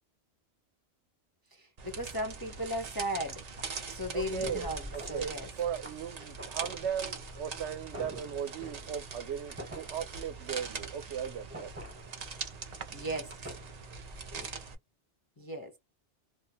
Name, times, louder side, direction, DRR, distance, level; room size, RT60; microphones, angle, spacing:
voice 1, 1.5-3.4 3.9-5.5 12.9-13.4 15.4-15.8, equal, 25° left, 0.5 m, -36 dB
sound 1, 1.8-14.7, right 5 dB, 45° right, 0.5 m, -42 dB
sound 2, 2.4-14.5, equal, 15° right, 0.9 m, -49 dB
voice 2, 4.1-5.3 5.6-11.7, right 8 dB, 75° right, 0.9 m, -37 dB
2.4 x 2.2 x 2.7 m
omnidirectional pair, 1.2 m